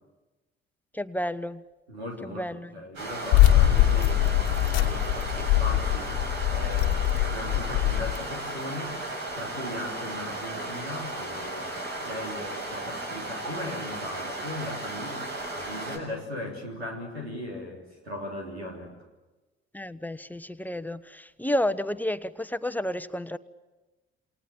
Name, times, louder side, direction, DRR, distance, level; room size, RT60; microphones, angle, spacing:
voice 1, 0.9-1.6 2.2-2.7 3.8-3.9 19.7-23.4, left 1 dB, 5° left, 1.0 m, -31 dB
voice 2, 1.9-2.5 2.7-6.1 6.5-9.0 9.3-11.8 12.0-15.2 15.5-18.9, left 1 dB, 85° right, 3.5 m, -38 dB
sound 1, 2.9-16.0, right 2 dB, 65° right, 7.2 m, -35 dB
sound 2, 3.3-8.2, left 13 dB, 65° left, 1.4 m, -22 dB
28.0 x 27.5 x 7.3 m
figure-of-eight pair, 45°, 31 cm